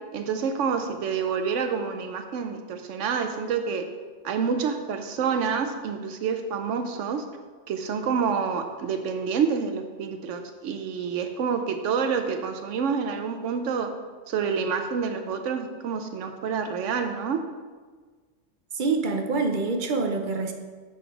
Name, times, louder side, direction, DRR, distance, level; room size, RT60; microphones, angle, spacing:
voice 1, 0.1-3.8 4.2-7.2 7.7-13.9 14.3-17.4, right 6 dB, 80° right, 7 dB, 0.9 m, -28 dB
voice 2, 18.7-20.5, right 3 dB, 50° right, 4 dB, 0.7 m, -26 dB
6.8 x 4.0 x 4.9 m, 1.4 s
omnidirectional pair, 1.3 m